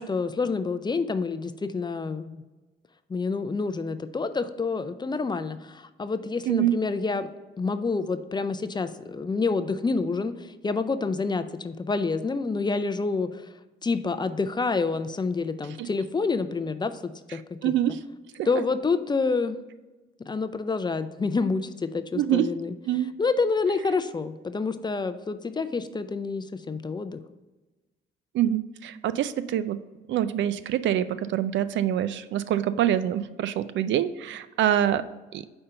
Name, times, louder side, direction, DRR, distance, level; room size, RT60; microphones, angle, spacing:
voice 1, 0.0-2.4 3.1-7.3 7.6-13.5 13.8-17.7 18.5-19.6 20.3-22.7 23.2-27.2, left 4 dB, 20° left, 11 dB, 0.4 m, -28 dB
voice 2, 6.5-6.8 15.8-15.9 17.6-18.0 18.4-18.5 22.1-22.5 22.9-23.1 28.3-29.8 30.1-35.0 35.3-35.4, right 11 dB, 70° right, 14 dB, 0.4 m, -25 dB
5.0 x 4.4 x 5.5 m, 1.1 s
cardioid pair, 90°, 20 cm